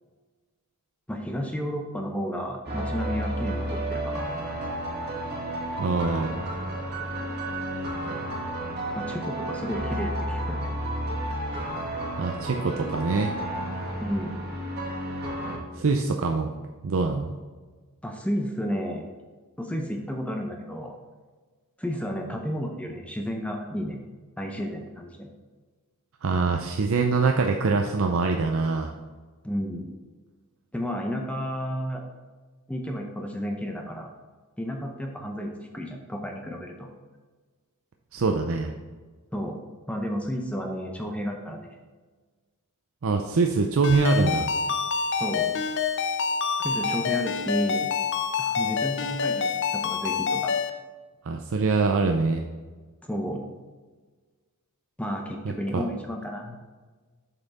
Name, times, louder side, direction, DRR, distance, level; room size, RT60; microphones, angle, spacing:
voice 1, 1.1-4.3 8.9-10.7 14.0-14.4 18.0-19.1 19.6-20.9 21.8-24.0 24.4-25.3 29.4-29.9 30.7-32.0 32.7-34.1 34.6-36.9 39.3-39.6 39.9-41.7 45.2-45.6 46.6-47.9 48.4-50.5 53.0-53.5 55.0-56.6, equal, 5° left, 2 dB, 0.6 m, -32 dB
sound 1, 2.6-15.6, right 1 dB, 50° right, 1.8 m, -32 dB
voice 2, 5.8-6.3 12.2-13.4 15.7-16.5 16.8-17.3 26.2-28.9 38.1-38.7 43.0-44.5 51.2-52.4 55.4-55.8, right 4 dB, 65° right, 3 dB, 0.5 m, -24 dB
Ringtone, 43.8-50.7, left 6 dB, 55° left, 0.5 m, -27 dB
7.2 x 5.7 x 4.1 m, 1.4 s
head